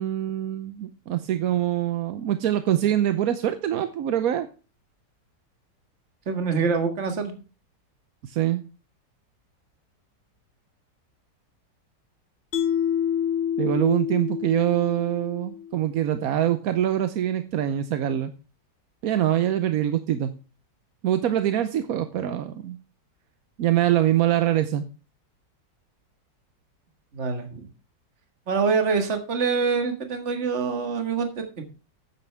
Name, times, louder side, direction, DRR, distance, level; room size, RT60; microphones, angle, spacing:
voice 1, 0.0-4.5 8.2-8.6 13.6-18.3 19.0-20.3 21.0-22.8 23.6-24.8, right 12 dB, 65° right, 10 dB, 1.1 m, -24 dB
voice 2, 6.3-7.3 27.1-27.6 28.5-31.6, right 5 dB, 40° right, 6 dB, 2.0 m, -25 dB
Mallet percussion, 12.5-15.8, left 9 dB, 60° left, 0.7 m, -27 dB
12.5 x 9.4 x 3.4 m, 0.33 s
omnidirectional pair, 1.9 m